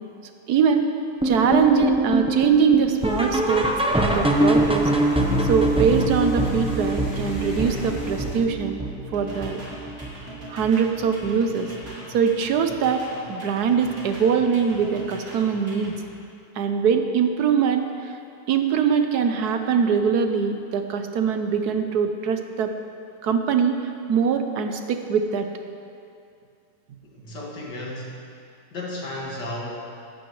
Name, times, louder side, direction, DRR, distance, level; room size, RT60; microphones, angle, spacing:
voice 1, 0.5-0.9 1.2-3.7 4.0-8.8 9.1-9.6 10.5-11.7 12.1-13.0 13.3-15.9 16.6-18.1 18.5-22.7 23.2-23.8 24.1-25.5, right 6 dB, 70° right, 6 dB, 1.2 m, -22 dB
sound 1, 1.2-10.3 10.6-10.9 11.2-11.3 11.8-11.9 12.4-12.5, right 1 dB, 5° right, 0.4 m, -24 dB
sound 2, 3.0-8.4, left 1 dB, 50° left, 2.1 m, -38 dB
sound 3, 9.1-16.0, right 1 dB, 55° right, 3.0 m, -41 dB
voice 2, 27.1-28.4 28.7-29.7, left 1 dB, 80° left, -3 dB, 2.7 m, -34 dB
15.5 x 12.5 x 3.2 m, 2.4 s
omnidirectional pair, 1.9 m